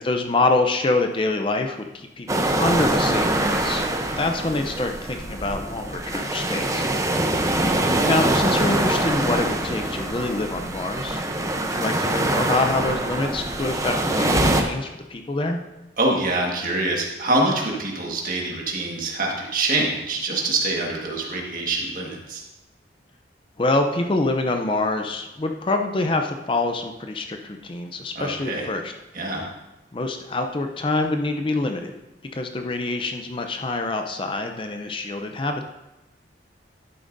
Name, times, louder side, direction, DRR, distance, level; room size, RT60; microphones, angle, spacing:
voice 1, 0.0-3.8 4.1-6.9 8.0-11.2 11.6-15.6 23.6-28.9 29.9-31.9 32.3-35.6, left 2 dB, 30° left, 5 dB, 0.5 m, -25 dB
sound 1, 2.3-14.6, right 1 dB, 15° right, 0.6 m, -24 dB
voice 2, 16.0-22.4 28.1-28.7 29.1-29.5, right 2 dB, 50° right, -1 dB, 1.6 m, -25 dB
11.0 x 8.6 x 2.6 m, 0.99 s
head